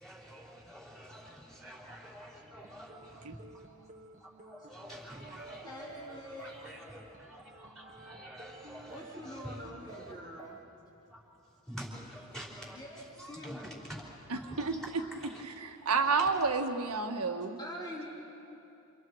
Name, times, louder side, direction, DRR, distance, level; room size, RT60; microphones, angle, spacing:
voice 1, 0.0-3.9 4.2-10.5 11.1-15.4 16.2-16.3, equal, ahead, -4 dB, 4.7 m, -48 dB
sound 1, 2.6-10.6, right 3 dB, 35° right, 1.4 m, -53 dB
voice 2, 5.6-6.5 8.9-10.6 12.7-13.0 13.3-13.9 17.2-17.3 17.6-18.1, equal, 20° left, -7 dB, 3.5 m, -45 dB
voice 3, 14.3-14.7 15.6-17.6, right 4 dB, 80° right, 4 dB, 1.7 m, -30 dB
29.0 x 29.0 x 4.8 m, 2.8 s
head